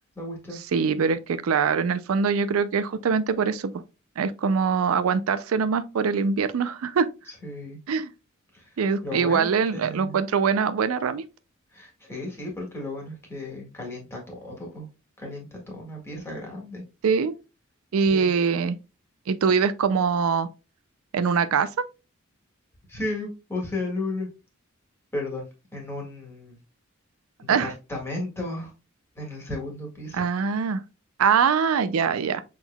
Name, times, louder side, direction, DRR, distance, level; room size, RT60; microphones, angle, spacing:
voice 1, 0.2-0.6 7.4-7.8 8.5-8.7 9.0-10.2 11.7-14.9 15.2-16.8 18.1-18.3 22.9-24.3 25.1-25.5 25.7-26.6 27.4-28.7 29.2-30.2, left 2 dB, 10° left, 1.8 m, -34 dB
voice 2, 0.7-3.8 4.2-7.1 7.9-8.1 8.8-11.2 17.0-17.3 17.9-18.8 19.3-20.5 21.1-21.7 27.5-27.7 30.1-30.8 31.2-32.4, right 6 dB, 90° right, 0.4 m, -23 dB
6.1 x 3.7 x 2.2 m
head